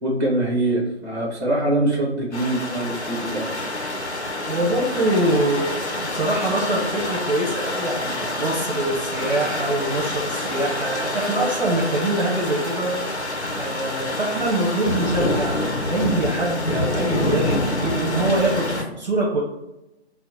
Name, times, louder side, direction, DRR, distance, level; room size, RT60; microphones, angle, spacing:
voice 1, 0.0-3.5, right 1 dB, 20° right, -2 dB, 1.0 m, -23 dB
sound 1, 2.3-18.8, left 1 dB, 85° left, 1.0 m, -27 dB
voice 2, 4.5-5.7 6.0-12.9 13.6-15.6 15.9-18.7 19.0-19.4, right 1 dB, 40° right, -2 dB, 0.9 m, -24 dB
4.3 x 2.1 x 4.2 m, 0.93 s
figure-of-eight pair, 140°, 33 cm